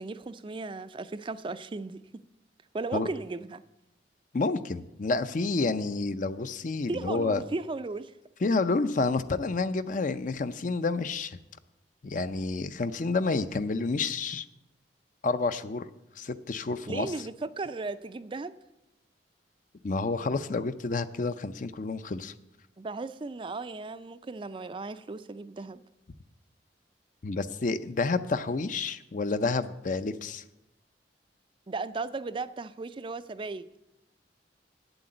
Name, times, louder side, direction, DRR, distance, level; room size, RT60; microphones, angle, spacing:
voice 1, 0.0-2.0 2.7-3.6 6.9-8.1 16.9-18.5 22.8-25.8 31.7-33.8, right 3 dB, 30° right, 0.4 m, -36 dB
voice 2, 4.3-7.4 8.4-11.4 12.0-14.5 15.2-15.9 16.2-17.1 19.8-22.3 27.2-30.4, left 3 dB, 45° left, 0.5 m, -29 dB
8.5 x 7.9 x 8.9 m
head